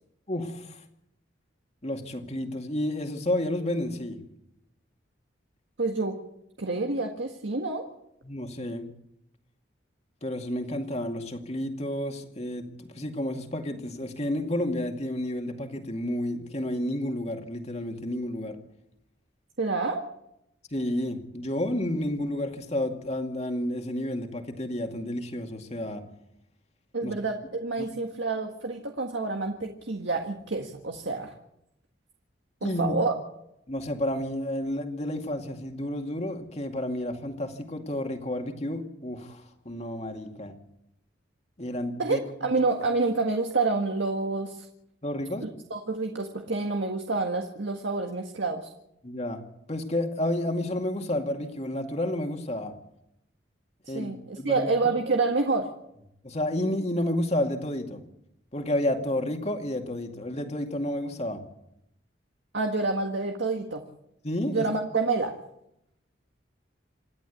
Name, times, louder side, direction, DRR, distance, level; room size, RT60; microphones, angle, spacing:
voice 1, 0.3-0.8 1.8-4.2 8.2-8.9 10.2-18.6 20.7-26.0 27.0-27.1 32.6-33.0 33.7-40.5 41.6-42.5 45.0-45.5 49.0-49.4 49.7-52.7 53.9-54.7 56.2-58.0 58.5-61.4 64.2-64.7, left 1 dB, 35° left, 4 dB, 2.3 m, -31 dB
voice 2, 5.8-6.2 6.6-7.9 19.6-20.0 26.9-31.3 32.6-33.1 42.0-44.7 45.4-48.7 53.8-55.7 62.5-63.8 64.5-65.3, right 3 dB, 75° right, 3 dB, 1.7 m, -28 dB
27.5 x 11.5 x 8.3 m, 0.81 s
head